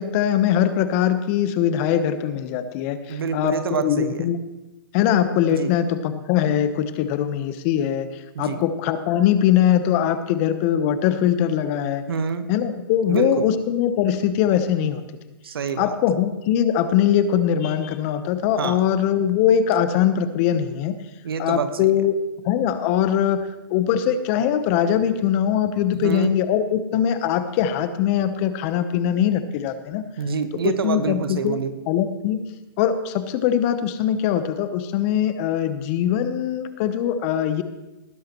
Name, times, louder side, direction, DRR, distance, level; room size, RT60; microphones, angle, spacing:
voice 1, 0.0-4.4 4.9-8.1 8.4-12.0 12.5-15.0 15.8-21.0 21.4-22.1 22.4-23.4 23.7-30.0 30.6-31.6 31.9-32.4 32.8-37.6, left 9 dB, 35° left, 11 dB, 0.9 m, -21 dB
voice 2, 3.1-4.3 5.5-5.7 8.3-8.6 12.1-12.5 13.1-13.5 15.4-15.9 18.6-18.8 21.2-21.9 25.9-26.3 30.2-31.7, right 6 dB, 80° right, 9 dB, 1.3 m, -27 dB
19.0 x 10.5 x 3.1 m, 1.0 s
hypercardioid pair, 140°, 12 cm